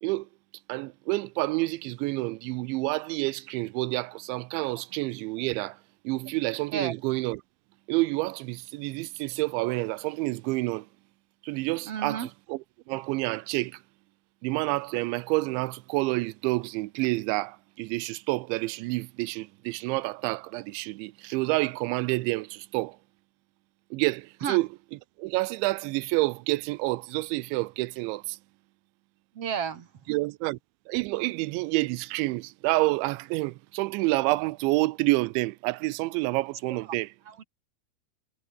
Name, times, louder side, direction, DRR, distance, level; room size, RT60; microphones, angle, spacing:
voice 1, 0.7-5.8 6.0-7.4 7.9-10.9 11.4-13.8 14.4-23.0 23.9-24.7 25.2-28.4 30.1-30.6 30.9-37.1, right 22 dB, 90° right, 3.0 m, -28 dB
voice 2, 11.9-12.3 24.4-24.6 29.4-29.9 36.7-36.8 37.3-37.4, right 7 dB, 50° right, 1.9 m, -31 dB
omnidirectional pair, 5.2 m